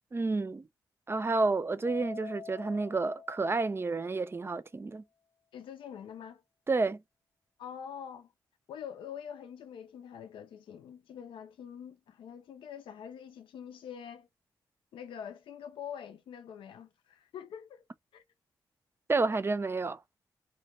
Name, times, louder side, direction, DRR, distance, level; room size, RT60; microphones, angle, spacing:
voice 1, 0.1-0.7 1.1-5.0 6.7-7.0 19.1-20.0, right 3 dB, 30° right, 0.4 m, -30 dB
Keyboard (musical), 1.8-4.3, left 6 dB, 90° right, 0.6 m, -47 dB
voice 2, 5.5-6.4 7.6-8.3 8.7-14.3 14.9-17.8 18.1-18.2, left 8 dB, 75° left, 0.4 m, -45 dB
2.2 x 2.1 x 2.8 m
supercardioid pair, 45°, 9 cm